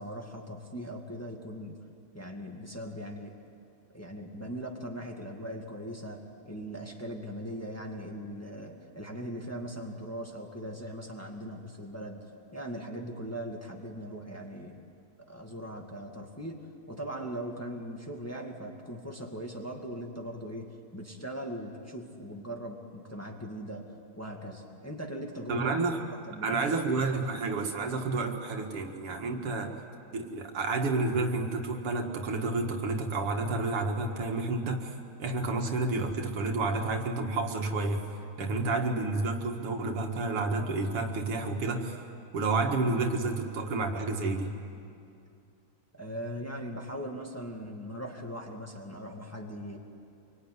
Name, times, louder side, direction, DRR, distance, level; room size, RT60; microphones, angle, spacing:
voice 1, 0.0-1.8 2.1-3.4 3.9-12.3 12.5-14.8 15.3-16.6 16.9-25.8 26.3-26.6 46.0-49.8, equal, 5° left, 1 dB, 2.0 m, -40 dB
voice 2, 25.5-26.0 26.4-29.7 30.1-38.1 38.4-42.0 42.3-44.5, right 3 dB, 90° right, 3 dB, 2.9 m, -30 dB
26.5 x 23.5 x 9.6 m, 2.5 s
omnidirectional pair, 2.4 m